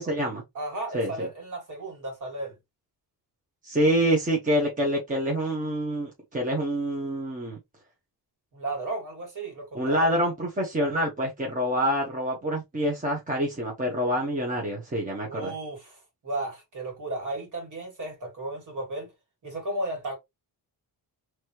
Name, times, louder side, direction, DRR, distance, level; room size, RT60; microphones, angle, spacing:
voice 1, 0.0-0.4 0.9-1.3 3.6-7.6 9.7-15.5, equal, 20° right, 1.2 m, -26 dB
voice 2, 0.5-2.6 8.5-10.1 15.3-19.1 19.4-20.2, right 2 dB, 45° right, 2.4 m, -34 dB
4.1 x 3.0 x 3.1 m
wide cardioid pair, 160°, 42 cm